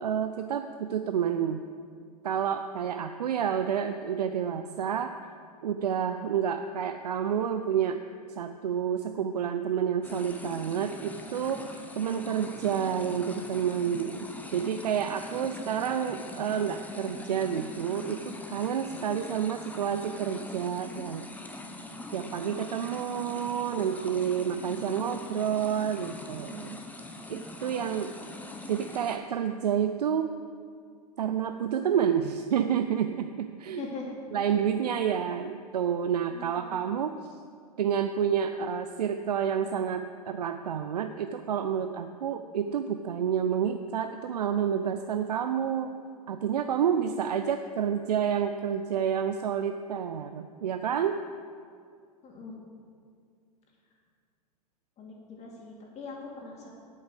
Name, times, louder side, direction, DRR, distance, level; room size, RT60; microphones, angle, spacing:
voice 1, 0.0-1.6 2.2-5.2 5.6-8.0 8.4-21.2 22.1-26.8 27.3-28.1 28.7-30.3 31.2-33.8 34.3-37.2 37.8-45.9 46.3-51.2, right 8 dB, 80° right, 8 dB, 0.5 m, -29 dB
sound 1, 10.0-29.2, left 1 dB, 10° left, 0.9 m, -42 dB
voice 2, 33.8-34.1 36.3-36.8 52.2-52.6 55.0-56.7, left 3 dB, 35° left, -1 dB, 2.7 m, -42 dB
8.6 x 8.2 x 6.6 m, 2.3 s
hypercardioid pair, 95°, 20 cm